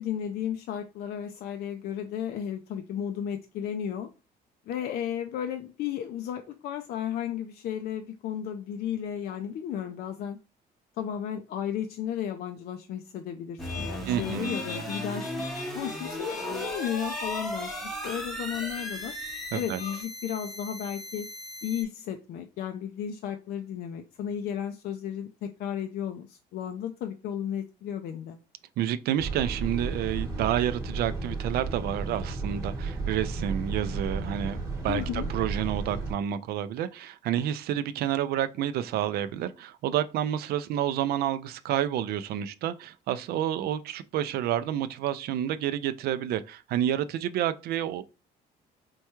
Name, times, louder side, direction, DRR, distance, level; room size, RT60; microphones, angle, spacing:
voice 1, 0.0-4.1 4.7-10.4 11.0-15.3 15.7-19.1 19.5-21.3 21.6-28.4 34.9-35.3, left 9 dB, 65° left, 0.4 m, -34 dB
sound 1, 13.6-20.0, left 5 dB, 90° left, 1.1 m, -42 dB
sound 2, 13.6-21.8, equal, ahead, 0.7 m, -36 dB
voice 2, 14.1-14.6 19.5-19.8 28.8-34.6 34.8-48.1, right 11 dB, 70° right, 0.4 m, -29 dB
sound 3, 29.2-36.1, right 3 dB, 20° right, 1.1 m, -33 dB
4.5 x 2.2 x 3.0 m
cardioid pair, 110°, 17 cm